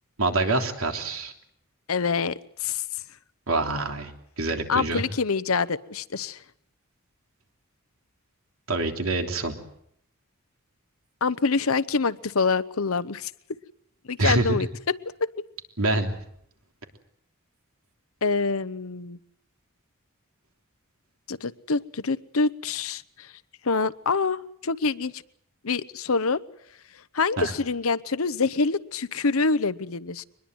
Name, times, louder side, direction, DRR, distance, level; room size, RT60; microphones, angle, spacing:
voice 1, 0.2-1.3 3.5-4.1 4.4-5.0 8.7-9.6 14.2-14.6 15.8-16.2 27.4-27.5, right 2 dB, 75° right, 4 dB, 3.3 m, -25 dB
voice 2, 1.9-2.8 4.7-6.4 11.2-13.6 14.1-15.3 18.2-19.2 21.3-23.3 23.6-25.2 25.6-26.4 27.1-30.2, left 4 dB, 75° left, 16 dB, 0.9 m, -26 dB
23.5 x 21.0 x 7.9 m, 0.72 s
head